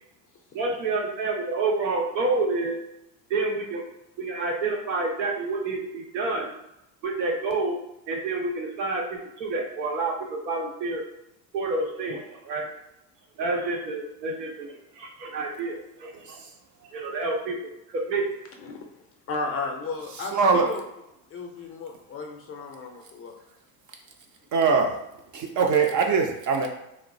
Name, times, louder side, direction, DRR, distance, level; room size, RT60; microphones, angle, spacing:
voice 1, 0.5-2.8 3.3-3.8 4.2-6.5 7.0-7.8 8.1-11.0 11.5-12.7 13.4-16.4 16.9-18.3, right 3 dB, 85° right, 0 dB, 0.8 m, -28 dB
voice 2, 16.1-16.5 20.1-20.7 24.5-25.0 25.3-26.7, right 5 dB, 40° right, 2 dB, 0.5 m, -22 dB
voice 3, 19.3-20.8 21.3-23.3, left 4 dB, 30° left, 2 dB, 0.5 m, -34 dB
2.9 x 2.0 x 2.6 m, 0.84 s
hypercardioid pair, 85°, 49 cm